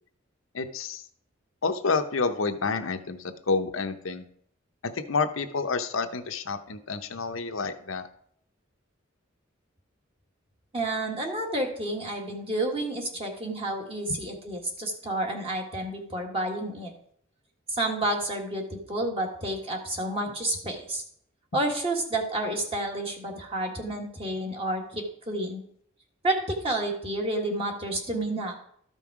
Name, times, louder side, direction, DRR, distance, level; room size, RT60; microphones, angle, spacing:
voice 1, 0.5-1.0 1.6-4.3 4.9-8.1 14.1-14.2, left 4 dB, 85° left, 7 dB, 0.8 m, -29 dB
voice 2, 10.7-16.9 17.7-21.0 21.5-25.6 26.2-28.6, right 1 dB, 30° right, 1 dB, 1.7 m, -30 dB
13.0 x 5.5 x 4.8 m, 0.66 s
head